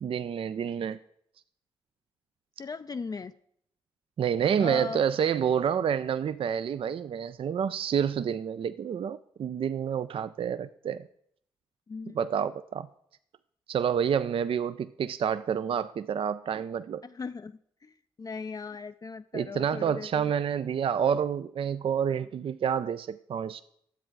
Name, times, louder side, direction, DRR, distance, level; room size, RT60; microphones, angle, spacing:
voice 1, 0.0-1.0 4.2-11.1 12.2-12.9 13.7-17.0 19.3-23.6, right 8 dB, 55° right, 13 dB, 0.4 m, -28 dB
voice 2, 2.6-3.3 4.6-5.0 11.9-12.2 17.0-20.3, left 4 dB, 35° left, 10 dB, 0.4 m, -38 dB
10.5 x 7.7 x 4.6 m, 0.70 s
supercardioid pair, 40°, 11 cm